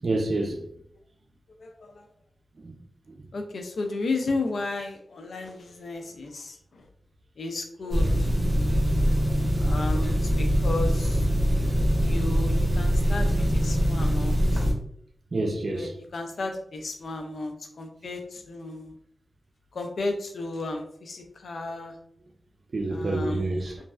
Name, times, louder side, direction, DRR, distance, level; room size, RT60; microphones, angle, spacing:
voice 1, 0.0-0.6 2.6-2.7 15.3-15.9 22.7-23.8, right 2 dB, 60° right, 0.5 m, -28 dB
voice 2, 1.6-2.1 3.3-6.9 7.4-8.3 9.6-11.3 12.0-14.6 15.7-18.9 19.7-22.0 22.9-23.4, left 3 dB, 90° left, 0.5 m, -34 dB
sound 1, 7.9-14.7, equal, 40° right, 1.1 m, -23 dB
3.1 x 2.5 x 2.3 m
wide cardioid pair, 75°, 0 cm